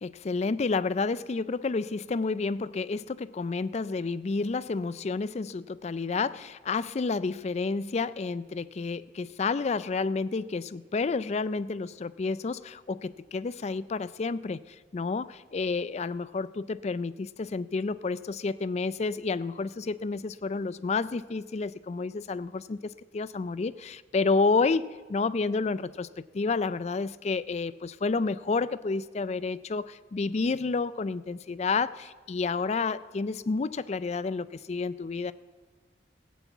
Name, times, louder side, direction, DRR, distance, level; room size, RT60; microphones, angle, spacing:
voice 1, 0.0-35.3, left 4 dB, 35° left, 16 dB, 0.4 m, -30 dB
15.5 x 8.4 x 8.1 m, 1.4 s
head